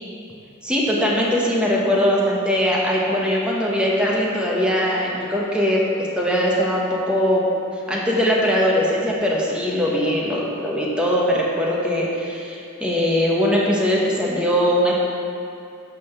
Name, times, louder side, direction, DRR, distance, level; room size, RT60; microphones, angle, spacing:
voice 1, 0.6-7.4 7.9-14.9, equal, 5° right, -4 dB, 1.0 m, -21 dB
10.5 x 3.7 x 6.6 m, 2.5 s
head